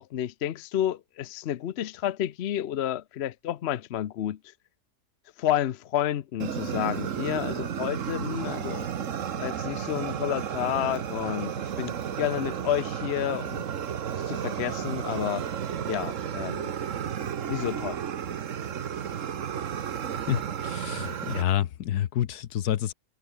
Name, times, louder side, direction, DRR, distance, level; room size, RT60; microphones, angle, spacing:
voice 1, 0.0-4.4 5.4-8.9 9.3-13.6 14.2-15.4 15.9-16.7 17.5-18.0, left 11 dB, 55° left, 0.7 m, -30 dB
Fire, 6.4-21.4, right 8 dB, 55° right, 1.3 m, -33 dB
voice 2, 20.3-22.9, left 11 dB, 75° left, 1.4 m, -28 dB
omnidirectional pair, 1.7 m